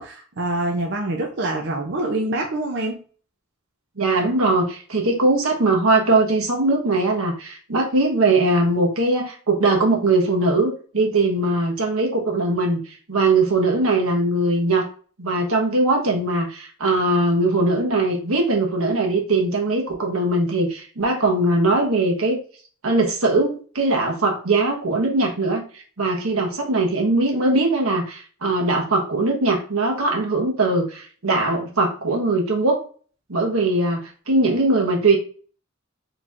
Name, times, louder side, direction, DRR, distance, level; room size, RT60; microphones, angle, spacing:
voice 1, 0.0-3.0, right 2 dB, 55° right, 2 dB, 0.6 m, -25 dB
voice 2, 4.0-14.9 15.2-22.4 22.8-32.8 33.3-35.2, right 2 dB, 90° right, 1 dB, 1.2 m, -20 dB
5.3 x 3.2 x 2.5 m, 0.41 s
head